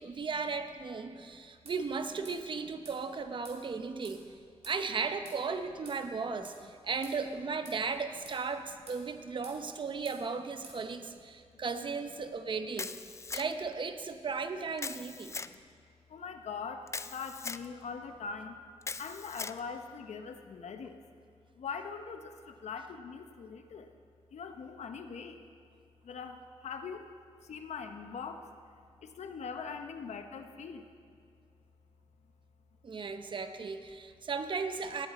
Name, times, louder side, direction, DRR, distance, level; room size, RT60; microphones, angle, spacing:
voice 1, 0.0-4.2 4.7-13.0 13.3-15.4 32.8-35.1, right 4 dB, 45° right, 8 dB, 0.7 m, -36 dB
sound 1, 1.7-1.8 2.3-2.4 2.9-3.0 3.4-3.6 4.0-4.2 4.6-4.8 5.3-5.4 5.9-6.0 6.4-6.6 7.0-7.2 7.7-7.8 8.3-8.4 8.9-9.0 9.4-9.6 10.1-10.2 10.6-10.8, right 3 dB, 65° right, 2.3 m, -51 dB
Camera, 12.8-13.7 14.8-15.5 16.9-17.7 18.8-19.6, left 4 dB, 25° left, 0.3 m, -40 dB
voice 2, 16.1-16.8 17.1-18.5 19.0-20.9 21.6-22.2 22.6-23.8 24.3-25.3 26.1-26.4 26.6-27.0 27.5-28.4 29.2-30.8, left 5 dB, 80° left, 7 dB, 0.8 m, -41 dB
18.0 x 8.0 x 4.2 m, 2.3 s
wide cardioid pair, 115°, 11 cm